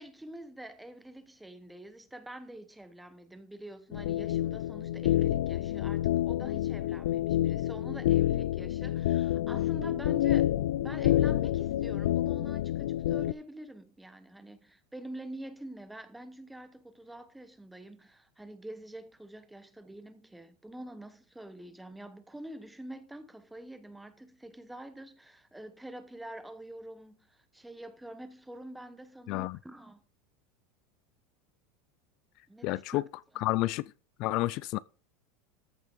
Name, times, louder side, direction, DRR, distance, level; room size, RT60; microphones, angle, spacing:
voice 1, 0.0-10.5 10.8-30.0 32.5-33.0 33.3-33.4, right 1 dB, 5° right, 1.0 m, -46 dB
sound 1, 3.9-13.3, left 13 dB, 90° left, 0.5 m, -28 dB
voice 2, 29.3-29.6 32.6-33.0 33.4-33.8 34.2-34.8, left 18 dB, 40° left, 0.4 m, -30 dB
14.0 x 6.8 x 5.1 m
supercardioid pair, 175°, 0 cm